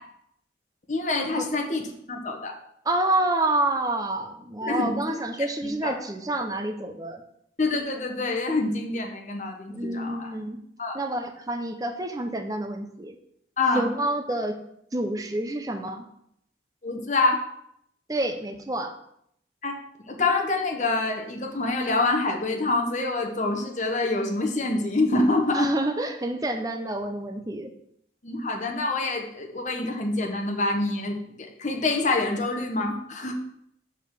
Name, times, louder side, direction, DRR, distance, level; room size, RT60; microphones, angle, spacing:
voice 1, 0.9-2.5 4.6-5.2 5.6-5.9 7.6-10.3 10.8-11.0 13.6-13.9 16.8-17.4 19.6-19.8 20.1-25.7 28.2-31.2 31.6-33.3, left 2 dB, 40° left, 2 dB, 1.0 m, -26 dB
voice 2, 2.8-7.2 9.7-10.6 10.9-13.2 13.7-14.6 14.9-16.1 18.1-18.9 25.5-27.7, right 1 dB, 20° right, 6 dB, 0.6 m, -28 dB
5.4 x 4.8 x 5.8 m, 0.73 s
head